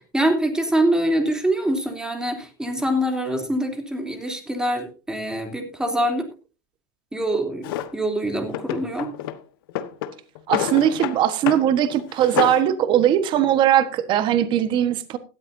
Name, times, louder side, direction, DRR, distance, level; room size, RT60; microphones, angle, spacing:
voice 1, 0.1-6.3 7.1-9.1, right 1 dB, 5° right, 3.1 m, -24 dB
Drawer open or close, 7.6-7.9 8.5-9.4 9.7-11.2 11.5-11.7 12.0-12.7, left 12 dB, 80° left, 1.3 m, -28 dB
voice 2, 10.5-15.2, right 11 dB, 40° right, 1.3 m, -20 dB
17.0 x 13.0 x 2.7 m
supercardioid pair, 135°, 12 cm